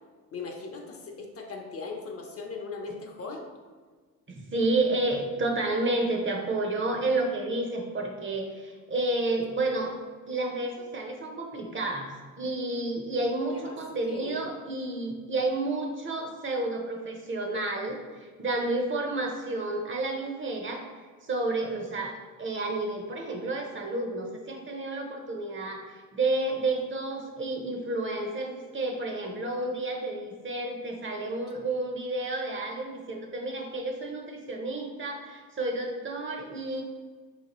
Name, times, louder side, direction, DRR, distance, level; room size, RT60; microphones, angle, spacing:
voice 1, 0.3-3.5 13.5-13.8 14.1-14.4, left 4 dB, 45° left, 2 dB, 0.7 m, -38 dB
voice 2, 4.3-10.0 10.3-20.8 21.2-36.8, right 2 dB, 35° right, 2 dB, 0.7 m, -30 dB
4.4 x 2.9 x 2.9 m, 1.5 s
cardioid pair, 80°, 34 cm